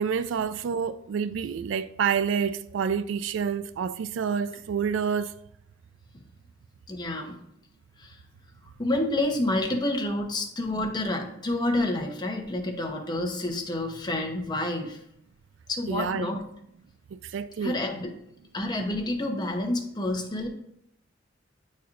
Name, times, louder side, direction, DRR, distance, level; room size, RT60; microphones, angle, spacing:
voice 1, 0.0-5.3 15.9-16.3 17.2-17.8, right 7 dB, 80° right, 0.3 m, -28 dB
voice 2, 6.9-7.4 8.0-8.2 8.8-15.0 15.7-16.4 17.6-18.1 18.5-20.5, left 1 dB, 25° left, 0.9 m, -29 dB
9.1 x 4.2 x 2.5 m
head